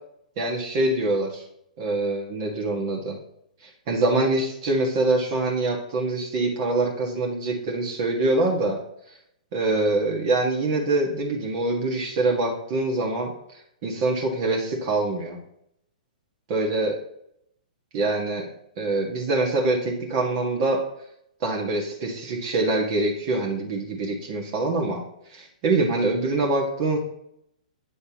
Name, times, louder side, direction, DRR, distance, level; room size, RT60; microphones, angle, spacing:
voice 1, 0.4-1.4 1.8-3.2 3.9-8.8 9.5-13.3 13.8-15.4 16.5-17.0 17.9-18.5 18.8-20.8 21.4-25.0 25.3-27.0, right 2 dB, 40° right, 0 dB, 1.6 m, -24 dB
8.6 x 6.4 x 3.0 m, 0.73 s
hypercardioid pair, 120°, 4 cm